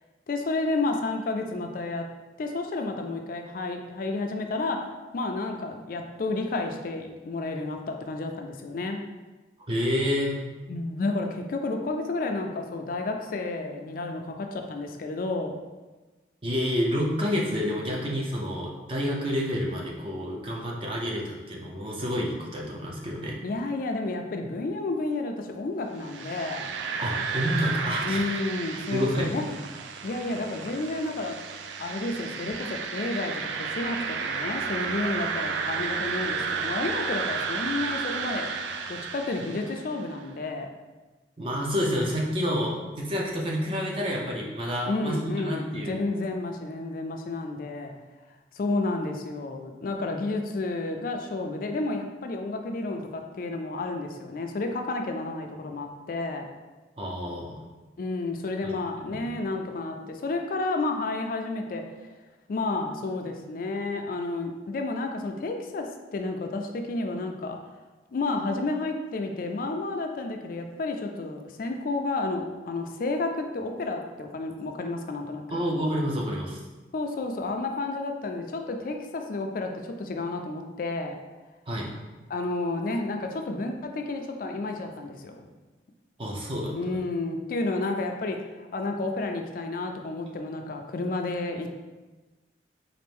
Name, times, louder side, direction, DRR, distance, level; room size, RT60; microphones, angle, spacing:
voice 1, 0.3-2.0 2.4-4.8 5.1-9.0 10.7-15.5 23.4-26.7 28.0-29.5 30.0-31.4 31.8-38.5 38.9-40.7 44.9-47.9 48.6-56.4 58.0-61.8 62.5-67.6 68.1-75.6 76.9-81.2 82.3-85.3 86.7-91.7, left 2 dB, 50° left, 4 dB, 0.3 m, -31 dB
voice 2, 9.7-10.4 16.4-23.4 27.0-28.3 28.9-29.3 41.4-46.0 57.0-57.5 58.6-58.7 59.1-59.3 75.5-76.6 81.7-81.9 86.2-87.0, equal, 30° right, -2 dB, 0.6 m, -29 dB
sound 1, 26.0-40.0, right 5 dB, 90° right, 0.3 m, -32 dB
4.2 x 2.5 x 3.4 m, 1.2 s
head